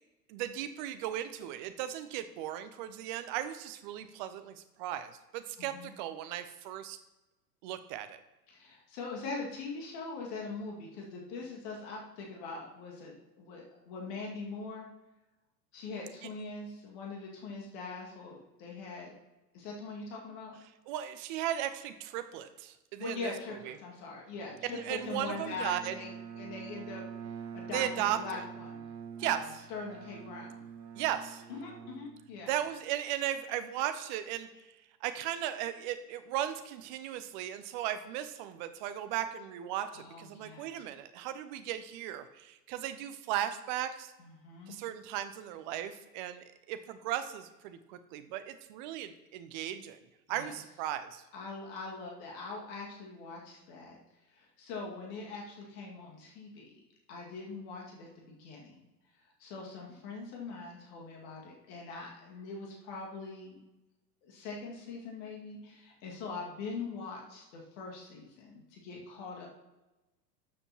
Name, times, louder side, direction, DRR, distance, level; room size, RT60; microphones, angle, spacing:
voice 1, 0.3-7.0 7.6-8.2 20.9-23.3 23.6-23.7 24.7-25.9 27.7-28.4 29.2-29.4 30.9-31.4 32.5-34.5 35.0-44.1 44.7-50.0 50.3-51.2, right 11 dB, 30° right, 11 dB, 0.6 m, -36 dB
voice 2, 5.6-5.9 8.5-14.9 15.7-19.1 19.5-20.6 23.0-26.1 26.4-28.8 29.1-30.6 31.5-32.5 39.9-40.8 44.2-44.8 50.3-50.6 51.3-54.0 54.3-56.6 57.1-58.8 59.4-63.6 64.2-69.5, left 4 dB, 40° left, -1 dB, 2.1 m, -42 dB
Bowed string instrument, 24.3-32.8, right 7 dB, 75° right, 0.9 m, -46 dB
12.5 x 6.9 x 2.9 m, 1.0 s
figure-of-eight pair, 95°, 49 cm